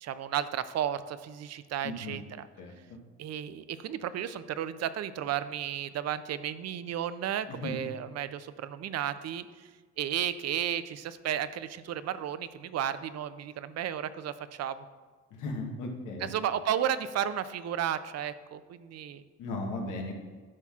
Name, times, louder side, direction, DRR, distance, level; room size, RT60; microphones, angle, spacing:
voice 1, 0.0-2.5 3.2-9.7 10.0-14.9 16.2-19.2, right 10 dB, 60° right, 14 dB, 0.4 m, -33 dB
voice 2, 1.8-2.2 2.6-2.7 7.5-7.8 15.4-16.3 19.4-20.1, left 2 dB, 90° left, 1 dB, 1.2 m, -36 dB
11.0 x 5.8 x 2.4 m, 1.4 s
cardioid pair, 90°, 30 cm